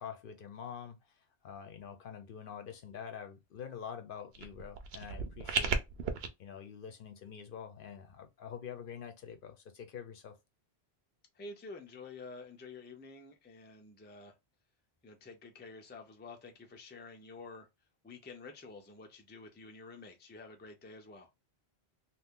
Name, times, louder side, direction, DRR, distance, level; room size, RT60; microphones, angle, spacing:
voice 1, 0.0-5.8 6.4-10.4, left 7 dB, 60° left, 0.7 m, -46 dB
sound 1, 4.3-6.3, right 5 dB, 70° right, 0.8 m, -35 dB
voice 2, 11.3-14.4 15.0-17.7 18.0-21.3, left 3 dB, 15° left, 0.4 m, -49 dB
2.7 x 2.4 x 3.6 m
omnidirectional pair, 1.1 m